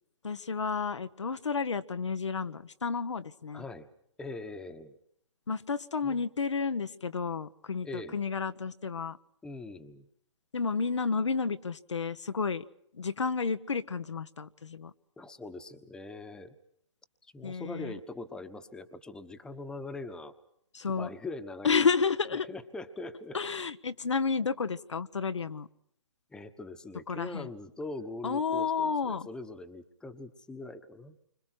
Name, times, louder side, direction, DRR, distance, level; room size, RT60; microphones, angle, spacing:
voice 1, 0.2-3.6 5.5-9.2 10.5-12.6 12.9-14.9 17.4-17.9 20.7-21.1 21.6-22.5 23.3-25.7 27.1-27.5 28.2-29.3, left 5 dB, 85° left, 10 dB, 1.3 m, -31 dB
voice 2, 3.5-3.9 4.2-5.0 6.0-6.2 7.8-8.2 9.4-10.1 15.2-16.5 17.2-20.3 20.9-21.9 22.3-23.4 26.3-31.1, left 2 dB, 5° left, 7 dB, 1.3 m, -42 dB
29.0 x 25.5 x 4.6 m, 0.70 s
hypercardioid pair, 145°, 15 cm